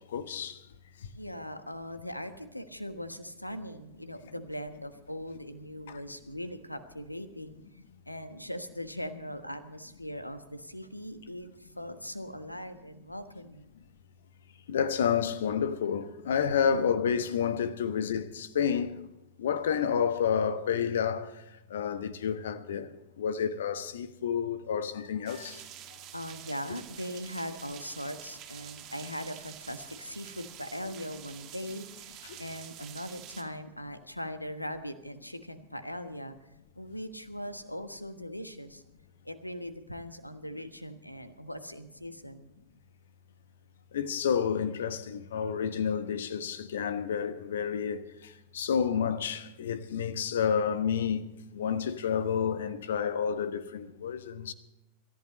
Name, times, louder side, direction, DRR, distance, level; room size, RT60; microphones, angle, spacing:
voice 1, 0.1-0.6 5.9-6.0 14.7-19.1 19.4-21.4 21.7-22.9 23.2-25.6 32.2-32.4 43.9-51.2 51.5-54.5, left 7 dB, 60° left, 1.2 m, -30 dB
voice 2, 1.1-7.6 8.1-13.7 16.4-16.9 26.1-36.5 36.7-38.8 39.2-42.5, equal, 85° left, 1.3 m, -40 dB
sound 1, 25.3-33.4, right 11 dB, 40° right, 2.2 m, -48 dB
26.0 x 14.5 x 3.1 m
figure-of-eight pair, 90°, 0 cm